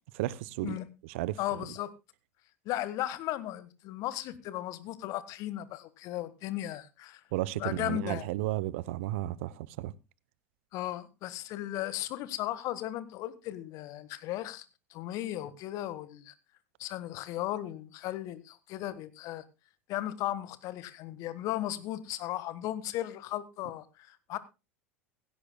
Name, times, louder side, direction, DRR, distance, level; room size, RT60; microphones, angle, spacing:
voice 1, 0.1-0.8 1.0-1.4 7.3-9.9, right 16 dB, 60° right, 0.8 m, -33 dB
voice 2, 1.4-1.9 2.6-7.2 7.5-8.2 10.7-14.6 14.9-16.3 16.8-19.4 19.9-24.4, left 14 dB, 50° left, 1.5 m, -36 dB
16.5 x 16.5 x 2.2 m
figure-of-eight pair, 80°, 7 cm